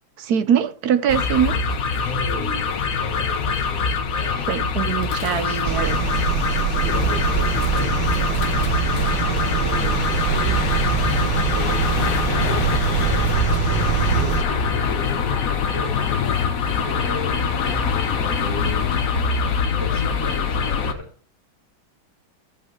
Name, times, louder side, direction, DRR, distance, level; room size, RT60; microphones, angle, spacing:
voice 1, 0.2-1.6 4.5-5.9, right 8 dB, 60° right, 1.2 m, -22 dB
sound 1, 1.1-20.9, left 5 dB, 55° left, 1.2 m, -23 dB
voice 2, 2.0-4.5 5.4-6.0 6.4-11.0 11.5-16.0 16.8-18.9 19.7-21.1, equal, 30° right, 2.9 m, -36 dB
sound 2, 5.6-14.4, right 12 dB, 80° right, 1.5 m, -24 dB
13.5 x 5.5 x 4.6 m
omnidirectional pair, 2.1 m